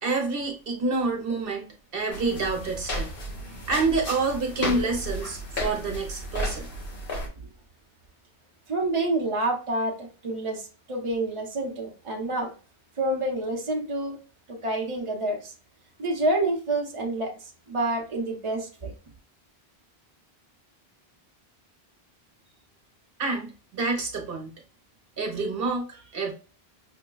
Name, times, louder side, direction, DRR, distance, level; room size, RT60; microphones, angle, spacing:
voice 1, 0.0-3.1 3.5-6.7 23.2-24.5 25.2-26.3, right 3 dB, 65° right, 1.1 m, -28 dB
sound 1, 2.1-7.3, left 1 dB, 60° left, 1.3 m, -33 dB
voice 2, 8.7-12.5 13.0-14.2 14.5-15.5 16.0-18.9, right 2 dB, 35° right, 0.8 m, -28 dB
6.0 x 2.2 x 2.2 m
omnidirectional pair, 1.0 m